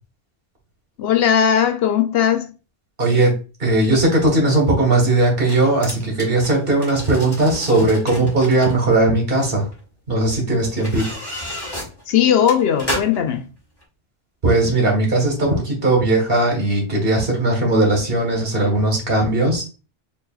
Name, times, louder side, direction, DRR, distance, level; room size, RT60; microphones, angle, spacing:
voice 1, 1.0-2.5 12.1-13.5, left 9 dB, 75° left, 0.8 m, -18 dB
voice 2, 3.0-9.7 10.1-11.2 14.4-19.6, right 2 dB, 65° right, 1.6 m, -18 dB
sound 1, 3.8-3.9 5.2-8.8 9.7-9.8 10.6-13.4 13.8-13.9, equal, 25° left, 1.2 m, -32 dB
4.6 x 3.2 x 2.3 m
omnidirectional pair, 1.0 m